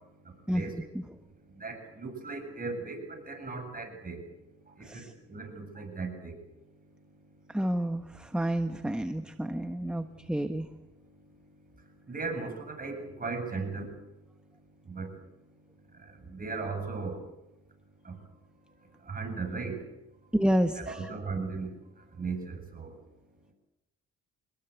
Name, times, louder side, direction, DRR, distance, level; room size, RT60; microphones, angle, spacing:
voice 1, 0.5-0.8 4.8-5.1 7.5-10.7 20.3-21.0, equal, 5° right, 8 dB, 1.3 m, -29 dB
voice 2, 1.6-4.2 4.8-5.0 5.3-6.4 12.1-14.0 14.9-15.1 16.1-17.2 18.0-18.2 19.0-19.8 20.7-21.7 22.2-22.9, right 4 dB, 30° right, 4 dB, 8.0 m, -37 dB
26.5 x 21.0 x 8.3 m, 0.95 s
cardioid pair, 90°, 30 cm